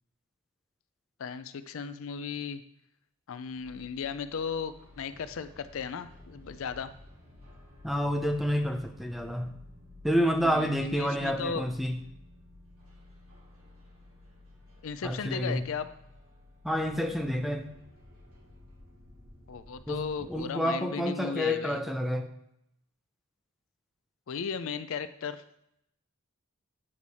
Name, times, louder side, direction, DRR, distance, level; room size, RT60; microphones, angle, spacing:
voice 1, 1.2-2.6 3.3-6.9 10.4-11.6 14.8-15.9 19.5-21.8 24.3-25.4, left 6 dB, 65° left, 12 dB, 0.4 m, -36 dB
sound 1, 3.5-20.4, left 1 dB, 80° right, 2.6 m, -53 dB
voice 2, 7.8-9.6 10.0-12.0 15.0-15.7 16.6-17.7 19.9-22.3, equal, ahead, 4 dB, 0.5 m, -29 dB
8.7 x 4.7 x 4.1 m, 0.76 s
head